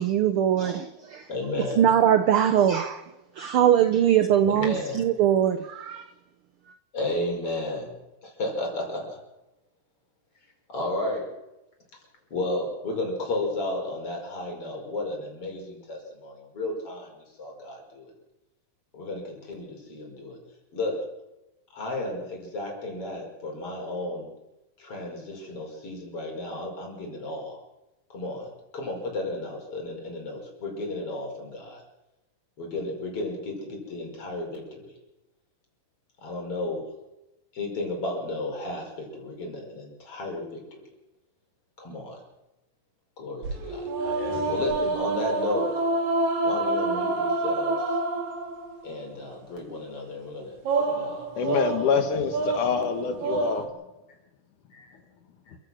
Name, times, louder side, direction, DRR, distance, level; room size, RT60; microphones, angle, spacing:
voice 1, 0.0-1.3 1.8-3.0 3.4-6.1, right 10 dB, 85° right, 1.2 m, -21 dB
voice 2, 1.3-1.8 4.6-5.0 6.9-7.9 8.2-9.2 10.7-11.3 12.3-17.1 17.4-18.1 18.9-20.4 20.7-21.1 21.7-24.3 24.8-27.6 28.1-31.8 32.6-34.9 36.2-36.8 37.5-40.8 41.8-42.2 43.2-44.2 44.5-45.7 46.4-48.0 48.8-51.9 54.7-54.9 55.5-55.6, left 2 dB, 45° left, 6.2 m, -33 dB
sound 1, 43.4-48.9 50.7-53.7, right 2 dB, 65° right, 3.4 m, -27 dB
voice 3, 51.4-53.7, left 6 dB, 75° left, 3.0 m, -26 dB
28.0 x 16.0 x 6.3 m
omnidirectional pair, 3.6 m